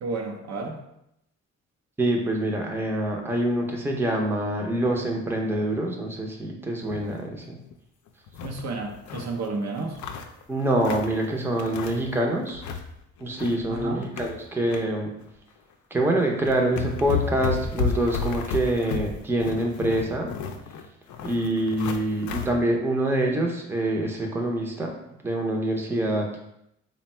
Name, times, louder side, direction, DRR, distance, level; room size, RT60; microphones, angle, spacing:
voice 1, 0.0-0.8 8.4-10.0 13.7-14.0, right 3 dB, 65° right, 1 dB, 0.7 m, -31 dB
voice 2, 2.0-7.6 10.5-12.6 13.2-15.1 15.9-20.3 21.2-24.9 25.2-26.3, right 1 dB, 10° right, 0 dB, 0.6 m, -25 dB
sound 1, 6.8-7.3 7.7-7.8 8.1-9.3 9.8-11.2 11.6-12.2 12.4-12.9 13.2-14.8 15.2-15.4 16.1-16.2 16.4-22.5, left 5 dB, 75° left, 0.5 m, -32 dB
3.3 x 2.2 x 4.2 m, 0.80 s
cardioid pair, 90°, 30 cm